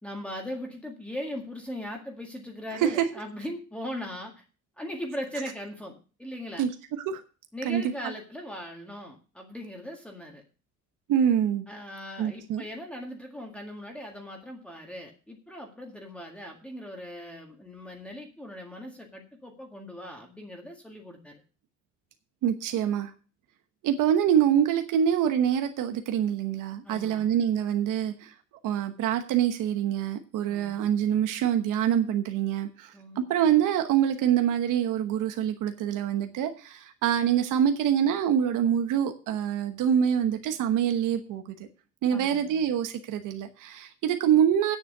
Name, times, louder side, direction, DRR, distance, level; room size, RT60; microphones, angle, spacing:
voice 1, 0.0-4.4 4.8-6.7 7.5-10.4 11.7-21.4 26.8-27.3 30.5-30.8 32.9-33.2 42.1-42.6, equal, 5° left, 1 dB, 1.8 m, -39 dB
voice 2, 2.7-3.1 6.6-6.7 7.1-7.2 7.6-8.1 11.1-11.7 12.2-12.6 22.4-23.1 23.8-28.3 28.6-41.6 42.0-44.8, right 9 dB, 80° right, 7 dB, 1.1 m, -25 dB
9.5 x 7.2 x 6.6 m, 0.35 s
cardioid pair, 175°, 31 cm